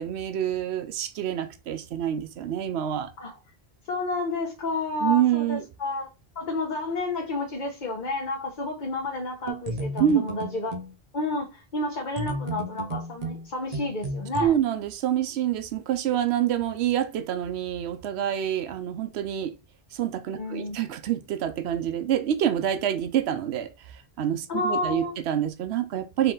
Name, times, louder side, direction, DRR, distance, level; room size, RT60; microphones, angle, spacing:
voice 1, 0.0-3.1 5.0-5.6 10.0-10.2 14.4-19.5 19.9-26.3, right 10 dB, 80° right, 0.9 m, -27 dB
voice 2, 3.9-6.1 6.3-10.8 11.1-14.5 20.4-20.8 24.5-25.2, left 2 dB, 50° left, 1.0 m, -30 dB
sound 1, 9.5-10.9 12.2-14.5, right 2 dB, 40° right, 0.8 m, -33 dB
4.5 x 2.9 x 3.8 m
omnidirectional pair, 1.1 m